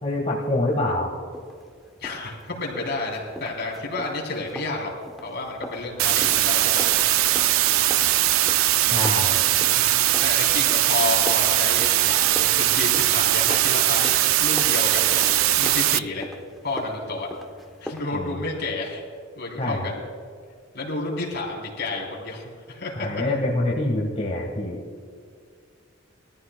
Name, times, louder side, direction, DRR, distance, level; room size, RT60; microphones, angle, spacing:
voice 1, 0.0-1.1 8.9-9.4 18.1-18.3 19.6-19.9 23.0-24.8, left 1 dB, 35° left, -5 dB, 1.5 m, -25 dB
sound 1, 1.3-18.0, equal, ahead, 0.8 m, -41 dB
voice 2, 2.0-4.9 5.2-6.8 7.2-7.3 9.6-16.3 16.6-17.3 17.8-19.0 19.4-20.0 20.7-23.1, left 2 dB, 55° left, -2 dB, 3.4 m, -30 dB
sound 2, 6.0-16.0, right 14 dB, 80° right, 0.3 m, -20 dB
21.0 x 14.0 x 2.2 m, 2.2 s
head